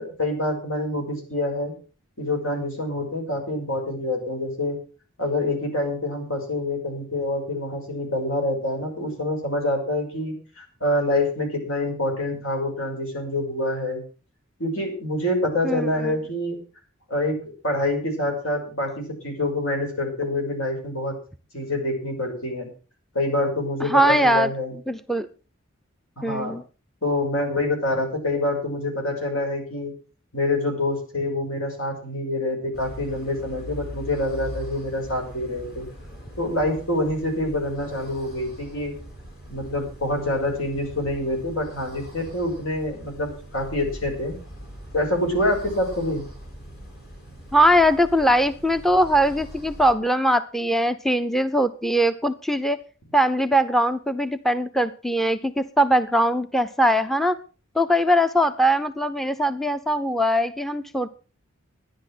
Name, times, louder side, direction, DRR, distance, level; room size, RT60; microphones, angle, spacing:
voice 1, 0.0-1.7 2.2-4.8 5.2-14.0 14.6-16.6 17.1-21.2 21.5-22.7 23.1-24.7 26.2-26.6 27.0-29.9 30.3-35.9 36.4-38.9 39.5-44.4 44.9-46.2, left 1 dB, 75° left, 2 dB, 5.6 m, -26 dB
voice 2, 15.6-16.1 23.8-24.5 24.9-25.3 26.2-26.6 47.5-52.8 53.1-57.4 57.8-61.1, equal, ahead, 9 dB, 0.5 m, -21 dB
sound 1, 32.7-49.9, equal, 50° left, 5.0 m, -41 dB
12.5 x 10.5 x 6.1 m, 0.37 s
head